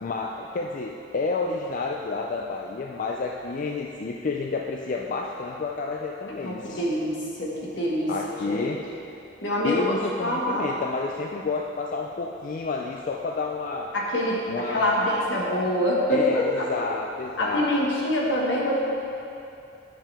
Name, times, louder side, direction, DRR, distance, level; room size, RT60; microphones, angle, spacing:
voice 1, 0.0-6.8 8.1-8.8 9.6-13.9 14.5-15.3 16.1-17.7, left 3 dB, 45° left, 1 dB, 0.4 m, -30 dB
voice 2, 6.4-8.1 8.5-8.7 9.4-9.8 10.2-10.7 13.9-16.7 17.4-18.8, equal, 75° left, -4 dB, 1.6 m, -25 dB
10.5 x 6.7 x 3.5 m, 2.7 s
head